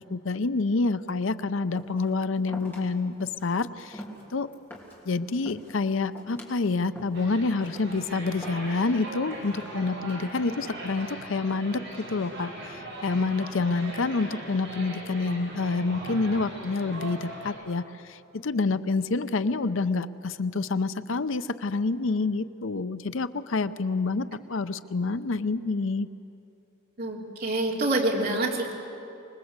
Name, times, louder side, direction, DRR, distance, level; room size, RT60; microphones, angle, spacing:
voice 1, 0.0-4.0 4.3-4.5 5.1-26.1, left 3 dB, 70° left, 13 dB, 0.6 m, -28 dB
sound 1, 1.8-2.1 2.5-2.8 3.2-3.5 3.8-5.0 5.3-5.8 6.2-6.5 7.0-7.2 7.6-8.0 8.4-8.9 9.3-9.7, equal, 10° left, 3.3 m, -43 dB
sound 2, 7.1-17.5, right 1 dB, 65° right, 7.7 m, -40 dB
voice 2, 27.0-28.7, right 2 dB, 50° right, -1 dB, 3.1 m, -26 dB
25.5 x 20.5 x 8.1 m, 2.8 s
head